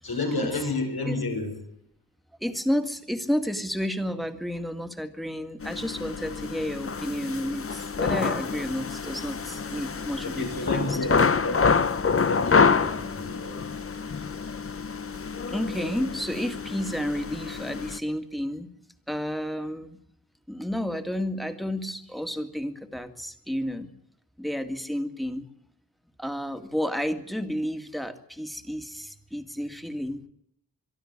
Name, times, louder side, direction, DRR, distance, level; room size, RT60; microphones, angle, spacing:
voice 1, 0.0-1.5 10.2-11.2 11.4-11.8 12.2-13.7, left 3 dB, 90° left, 3 dB, 6.6 m, -31 dB
voice 2, 2.4-11.2 15.5-18.7 19.1-20.0 20.5-23.9 24.4-25.5 26.2-30.2, equal, ahead, 7 dB, 2.0 m, -31 dB
sound 1, 5.6-18.0, left 5 dB, 40° left, 0.9 m, -27 dB
24.0 x 12.5 x 9.9 m, 0.71 s
wide cardioid pair, 100°, 36 cm